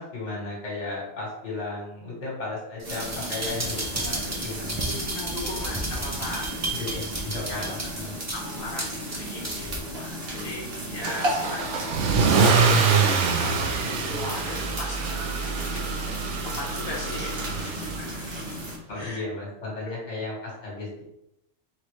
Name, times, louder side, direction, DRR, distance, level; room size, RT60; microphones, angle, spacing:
voice 1, 0.0-4.8 6.7-8.1 18.9-21.0, left 2 dB, 70° left, -3 dB, 1.6 m, -35 dB
sound 1, 2.8-9.8 10.2-10.3, right 1 dB, 25° right, 0.4 m, -33 dB
sound 2, 2.8-18.8, right 1 dB, 55° right, 1.3 m, -35 dB
voice 2, 4.8-7.0 7.4-7.7 8.0-16.2 16.4-18.1 18.9-19.2 19.9-20.2, left 1 dB, 55° left, -5 dB, 1.2 m, -38 dB
Car / Engine starting / Accelerating revving vroom, 11.0-18.1, right 5 dB, 80° right, 0.9 m, -25 dB
4.1 x 3.8 x 3.1 m, 0.83 s
omnidirectional pair, 1.2 m